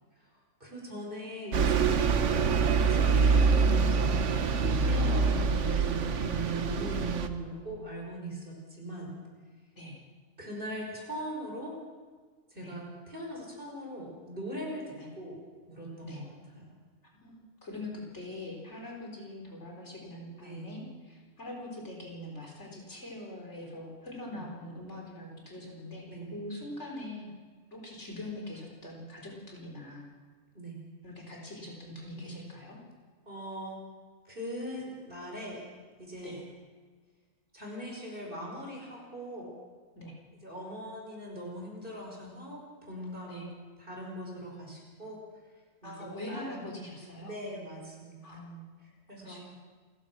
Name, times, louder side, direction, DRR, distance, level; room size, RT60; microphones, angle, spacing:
voice 1, 0.6-1.9 2.9-4.2 4.8-9.1 10.4-11.8 12.5-15.4 15.6-16.7 20.3-20.7 24.3-24.4 26.1-26.3 30.5-30.8 32.2-32.3 33.3-33.8 34.3-35.7 36.0-36.4 37.5-39.5 40.3-43.5 43.8-45.2 45.8-46.7 47.2-48.3 48.8-49.4, right 1 dB, 40° right, -1 dB, 5.4 m, -40 dB
Bus, 1.5-7.3, right 5 dB, 65° right, 1.3 m, -25 dB
voice 2, 17.2-27.3 27.7-30.1 31.0-32.8 36.2-36.4 40.0-40.1 43.3-43.5 45.8-47.3 48.2-48.6 49.2-49.5, left 1 dB, 55° left, -1 dB, 4.7 m, -43 dB
28.0 x 15.5 x 6.2 m, 1.5 s
omnidirectional pair, 1.4 m